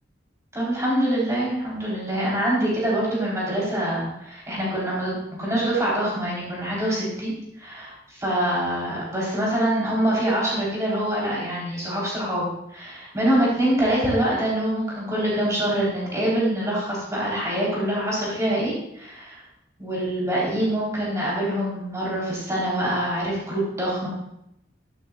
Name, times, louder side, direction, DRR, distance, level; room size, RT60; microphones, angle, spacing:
voice 1, 0.5-19.4 19.8-24.1, right 1 dB, 15° right, -6 dB, 3.7 m, -25 dB
15.0 x 9.2 x 2.4 m, 0.80 s
head